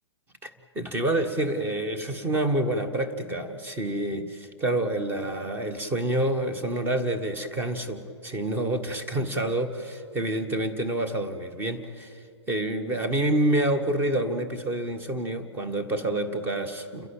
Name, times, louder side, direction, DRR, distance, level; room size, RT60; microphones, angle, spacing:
voice 1, 0.4-17.1, right 1 dB, 15° right, 7 dB, 1.6 m, -28 dB
30.0 x 11.0 x 9.1 m, 2.5 s
figure-of-eight pair, 125°, 14 cm